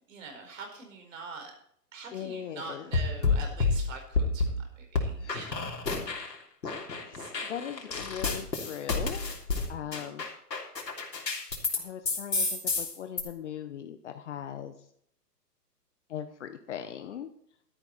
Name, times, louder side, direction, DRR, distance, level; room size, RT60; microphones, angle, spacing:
voice 1, 0.1-1.5 1.9-5.8 7.1-7.6 9.8-10.1, right 4 dB, 50° right, 4 dB, 4.8 m, -44 dB
voice 2, 2.1-2.9 5.2-5.4 7.0-9.2 9.7-10.2 11.8-14.7 16.1-17.3, left 9 dB, 45° left, 9 dB, 1.0 m, -39 dB
sound 1, 2.9-4.6 4.9-6.3 6.6-11.8 12.0-13.2, left 3 dB, 80° left, 3.3 m, -29 dB
13.0 x 11.5 x 4.1 m, 0.67 s
hypercardioid pair, 135°, 49 cm